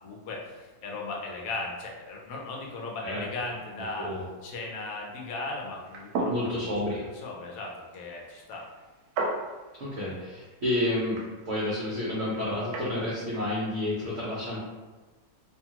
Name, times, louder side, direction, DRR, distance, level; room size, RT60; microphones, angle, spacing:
voice 1, 0.0-4.1 4.4-6.7 7.1-8.7, left 3 dB, 70° left, -1 dB, 1.0 m, -37 dB
sound 1, 5.8-12.9, right 2 dB, 75° right, 1.0 m, -37 dB
voice 2, 6.3-7.1 9.8-14.6, left 1 dB, 55° right, -7 dB, 0.8 m, -30 dB
2.7 x 2.3 x 2.8 m, 1.3 s
omnidirectional pair, 1.7 m